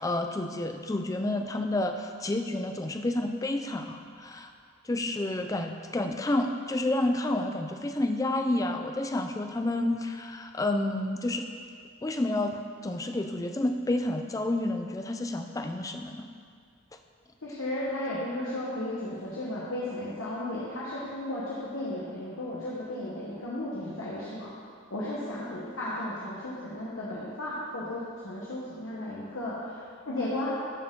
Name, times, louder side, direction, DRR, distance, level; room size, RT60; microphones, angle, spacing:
voice 1, 0.0-4.5 4.8-11.5 12.0-16.3, left 1 dB, 15° left, 6 dB, 0.3 m, -30 dB
voice 2, 17.4-24.5 24.9-30.6, left 1 dB, 75° left, -8 dB, 1.1 m, -34 dB
12.5 x 4.4 x 3.8 m, 2.2 s
head